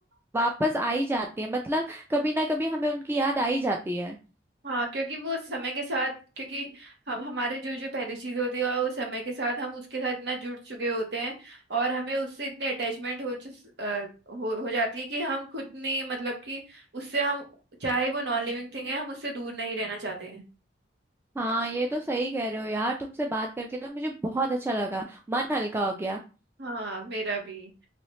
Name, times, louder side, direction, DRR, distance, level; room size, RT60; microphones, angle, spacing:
voice 1, 0.3-4.2 21.4-26.2, right 1 dB, 15° right, 2 dB, 0.3 m, -28 dB
voice 2, 4.6-17.4 17.8-20.4 26.6-27.7, right 2 dB, 70° right, 2 dB, 1.0 m, -31 dB
3.0 x 2.9 x 3.1 m, 0.33 s
head